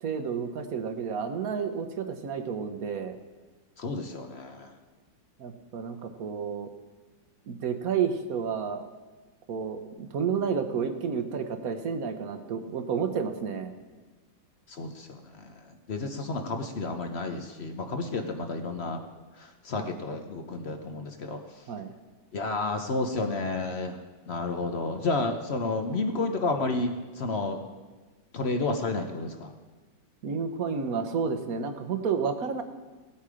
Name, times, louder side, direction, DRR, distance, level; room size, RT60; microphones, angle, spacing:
voice 1, 0.0-3.2 5.4-6.7 7.5-8.8 9.5-13.7 19.8-20.0 21.7-21.9 30.2-32.6, right 6 dB, 55° right, 8 dB, 1.1 m, -31 dB
voice 2, 3.8-4.7 12.6-12.7 14.7-15.5 15.9-19.0 19.4-21.4 22.3-24.0 24.3-27.6 28.3-29.5, left 3 dB, 55° left, 5 dB, 0.7 m, -31 dB
17.5 x 8.4 x 5.0 m, 1.3 s
omnidirectional pair, 2.2 m